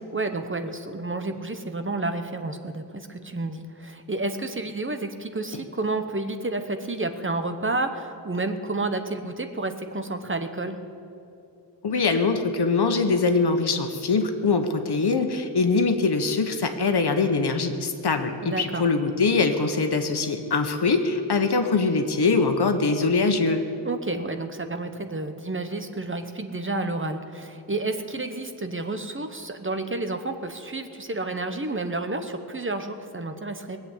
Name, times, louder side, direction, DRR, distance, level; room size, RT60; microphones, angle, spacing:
voice 1, 0.1-10.8 18.4-18.8 23.8-33.8, right 2 dB, 30° right, 7 dB, 1.1 m, -30 dB
voice 2, 11.8-23.6, left 4 dB, 65° left, 6 dB, 1.3 m, -23 dB
19.5 x 8.1 x 8.5 m, 2.7 s
wide cardioid pair, 85°, 42 cm